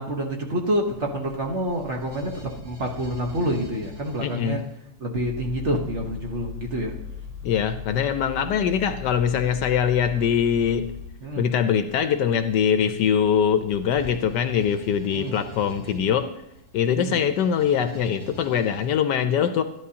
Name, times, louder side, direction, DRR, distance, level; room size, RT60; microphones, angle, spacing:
voice 1, 0.0-4.6 5.0-7.0 11.2-11.5 15.2-15.4 17.0-17.2, right 1 dB, 45° right, 1 dB, 1.3 m, -27 dB
sound 1, 0.9-4.8 10.1-10.4 11.2-18.9, right 1 dB, 90° right, 3.4 m, -43 dB
voice 2, 4.2-4.6 7.4-10.8 11.4-16.3 16.7-19.6, left 8 dB, 70° left, 9 dB, 1.2 m, -23 dB
sound 2, 5.1-11.1, left 6 dB, 20° right, 1.3 m, -38 dB
13.5 x 11.0 x 2.8 m, 0.83 s
omnidirectional pair, 2.0 m